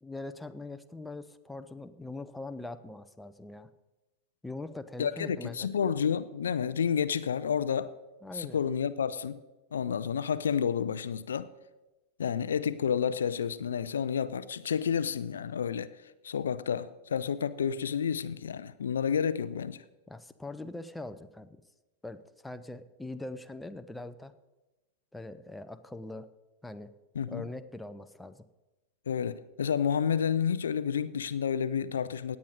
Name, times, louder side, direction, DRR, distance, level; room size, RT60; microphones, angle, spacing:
voice 1, 0.0-3.7 4.4-5.7 8.2-8.6 20.1-21.6 22.0-24.3 25.1-26.3 26.6-26.9 27.3-28.4, left 2 dB, 5° left, 0.6 m, -42 dB
voice 2, 5.0-7.9 8.3-9.4 9.7-11.5 12.2-15.9 16.2-19.8 27.2-27.5 29.1-32.4, left 7 dB, 65° left, 0.4 m, -30 dB
17.0 x 9.5 x 4.0 m
figure-of-eight pair, 90°, 0 cm